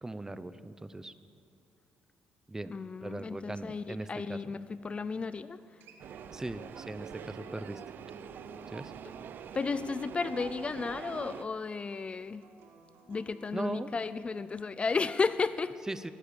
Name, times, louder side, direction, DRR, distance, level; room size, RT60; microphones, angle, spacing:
voice 1, 0.0-1.1 2.5-2.7 3.0-4.4 6.3-7.8 8.7-8.9 13.5-13.9 15.9-16.1, right 2 dB, 15° right, 13 dB, 0.7 m, -39 dB
voice 2, 2.7-5.6 9.5-12.4 13.1-15.8, left 4 dB, 30° left, 14 dB, 0.4 m, -33 dB
Acoustic guitar, 5.6-10.8 12.4-13.6, right 2 dB, 80° right, 1.7 m, -57 dB
sound 1, 6.0-11.4, right 8 dB, 60° right, 0.6 m, -45 dB
18.0 x 10.0 x 6.9 m, 2.6 s
cardioid pair, 80°, 4 cm